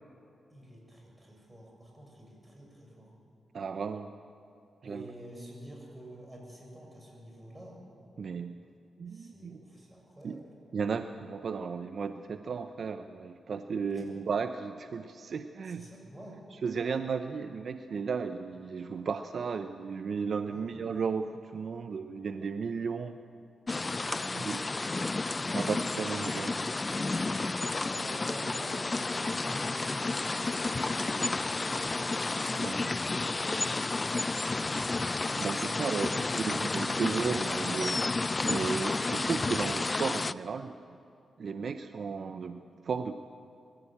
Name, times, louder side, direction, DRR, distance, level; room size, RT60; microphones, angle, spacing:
voice 1, 0.5-3.1 4.8-7.8 9.1-10.4 13.9-14.1 15.6-16.4 20.5-20.8 24.3-24.5 27.7-29.8 30.3-31.6 32.1-35.1 35.6-37.0, right 1 dB, 20° right, 0 dB, 7.1 m, -49 dB
voice 2, 3.5-4.1 4.8-5.0 8.2-8.6 9.0-9.6 10.2-10.4 10.7-15.8 16.6-23.2 24.3-24.6 25.5-26.6 32.6-32.9 35.4-36.2 36.5-38.0 38.5-40.7 41.4-43.1, right 5 dB, 60° right, 9 dB, 0.7 m, -34 dB
sound 1, 23.7-40.3, left 3 dB, 30° left, 0.5 m, -31 dB
23.0 x 14.5 x 8.7 m, 2.7 s
cardioid pair, 75°, 0 cm